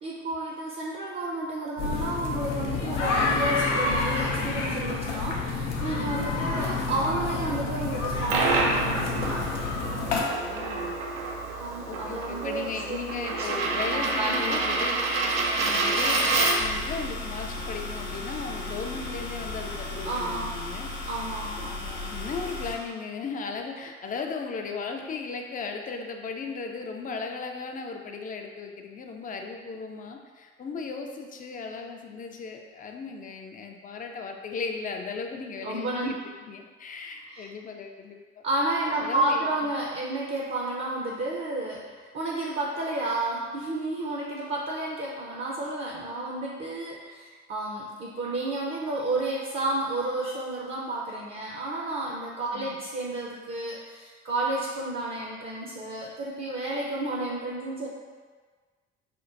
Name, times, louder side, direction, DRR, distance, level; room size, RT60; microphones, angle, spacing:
voice 1, 0.0-9.5 11.6-14.6 20.0-20.6 21.1-21.7 35.6-36.1 37.3-37.5 38.4-57.9, right 2 dB, 35° right, -3 dB, 0.6 m, -31 dB
sound 1, 1.8-10.2, left 3 dB, 85° left, 0.5 m, -28 dB
voice 2, 5.9-6.3 10.3-10.9 11.9-15.0 15.6-20.9 21.6-36.2 36.5-38.4 39.0-39.7 52.5-52.8, left 4 dB, 25° left, 3 dB, 0.4 m, -36 dB
Coin (dropping), 7.9-16.8, right 3 dB, 80° right, 0.5 m, -28 dB
sound 2, 16.6-22.8, left 2 dB, 65° left, 0.9 m, -35 dB
4.4 x 2.1 x 2.5 m, 1.5 s
figure-of-eight pair, 50°, 35 cm